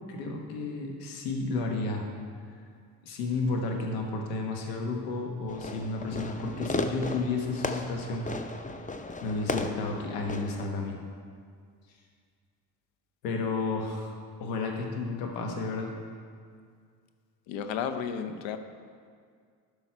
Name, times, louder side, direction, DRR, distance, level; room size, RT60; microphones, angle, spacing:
voice 1, 0.1-2.1 3.0-8.3 9.2-11.0 13.2-14.1 14.4-15.9, left 3 dB, 85° left, 2 dB, 1.3 m, -32 dB
Fireworks, 5.5-10.6, left 2 dB, 15° left, 0.7 m, -35 dB
voice 2, 17.5-18.6, left 7 dB, 65° left, 9 dB, 0.9 m, -32 dB
12.0 x 5.5 x 4.6 m, 2.1 s
hypercardioid pair, 50°, 48 cm